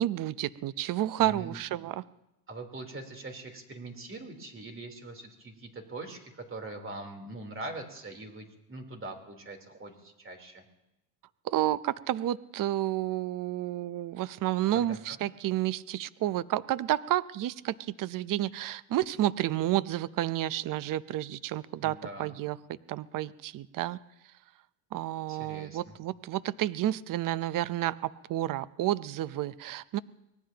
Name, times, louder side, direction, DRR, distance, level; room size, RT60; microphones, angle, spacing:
voice 1, 0.0-2.0 11.4-22.6 22.9-24.0 24.9-30.0, right 13 dB, 45° right, 17 dB, 0.7 m, -30 dB
voice 2, 1.2-1.6 2.5-10.6 14.7-15.2 21.8-22.3 25.3-25.8, right 2 dB, 25° right, 3 dB, 3.6 m, -42 dB
25.0 x 18.5 x 2.9 m, 0.90 s
supercardioid pair, 85°, 45 cm